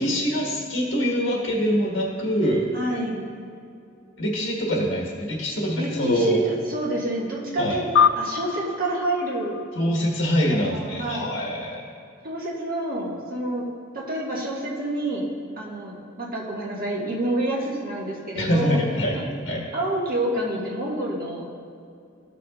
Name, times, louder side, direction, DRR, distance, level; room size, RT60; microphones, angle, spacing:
voice 1, 0.0-2.6 4.2-6.4 7.6-7.8 9.7-11.8 18.3-19.2 19.4-19.6, equal, 75° left, -2 dB, 1.4 m, -24 dB
voice 2, 2.7-3.2 5.8-9.6 10.5-11.3 12.2-13.6 13.9-15.3 15.6-18.8 19.1-19.2 19.7-21.5, right 1 dB, 45° right, -4 dB, 1.6 m, -28 dB
sound 1, 7.9-10.7, left 7 dB, 60° left, 0.3 m, -25 dB
14.0 x 5.9 x 2.4 m, 2.4 s
head